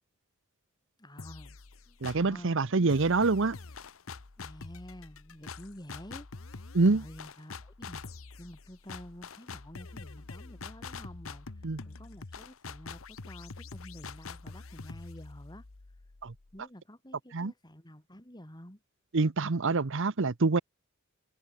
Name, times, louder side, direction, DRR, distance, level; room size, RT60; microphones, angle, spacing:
voice 1, 1.0-1.6 1.9-2.9 4.4-8.0 8.4-11.5 11.8-15.7 16.5-18.8, equal, 20° left, 6.1 m, -49 dB
sound 1, 1.2-2.4 2.9-16.6, left 4 dB, 75° left, 1.1 m, -45 dB
voice 2, 2.0-3.6 6.7-7.0 11.6-11.8 16.2-16.3 17.3-17.5 19.1-20.6, right 3 dB, 65° right, 0.9 m, -26 dB
head